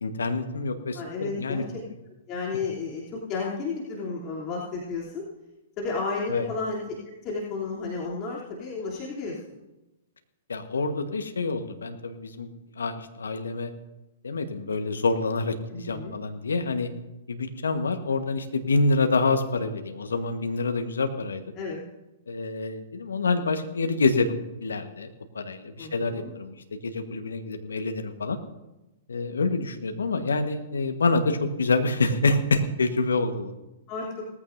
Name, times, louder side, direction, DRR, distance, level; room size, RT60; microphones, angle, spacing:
voice 1, 0.0-1.6 6.3-6.5 10.5-12.5 12.8-13.7 14.2-16.9 17.3-21.4 22.3-25.1 25.3-28.4 29.1-33.5, left 3 dB, 80° left, 7 dB, 1.3 m, -27 dB
voice 2, 0.9-1.8 2.3-5.2 5.8-6.8 7.2-9.4 15.7-16.1 21.6-21.8 25.8-26.3 33.9-34.1, left 4 dB, 35° left, -5 dB, 3.1 m, -32 dB
19.0 x 14.5 x 2.7 m, 1.0 s
figure-of-eight pair, 110°, 0 cm